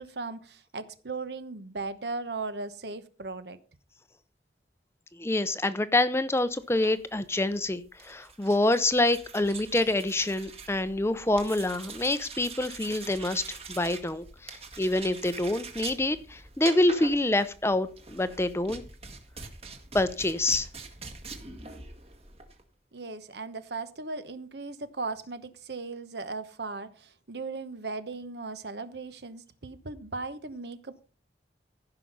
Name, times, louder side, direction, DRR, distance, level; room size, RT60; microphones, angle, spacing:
voice 1, 0.0-3.6 22.9-31.1, right 3 dB, 65° right, 1.1 m, -37 dB
voice 2, 5.2-18.8 19.9-20.7, left 2 dB, 15° left, 0.6 m, -26 dB
sound 1, 6.6-22.6, right 4 dB, 35° right, 1.7 m, -44 dB
15.0 x 5.8 x 5.4 m
head